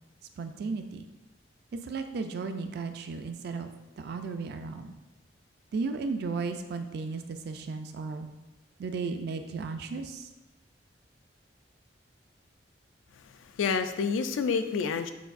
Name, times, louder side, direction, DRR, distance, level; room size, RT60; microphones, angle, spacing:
voice 1, 0.4-1.0 1.8-4.9 5.7-8.3 8.8-10.3, right 4 dB, 55° right, 8 dB, 0.3 m, -35 dB
voice 2, 13.2-15.1, left 5 dB, 90° left, 9 dB, 0.3 m, -29 dB
6.0 x 2.6 x 2.4 m, 1.0 s
head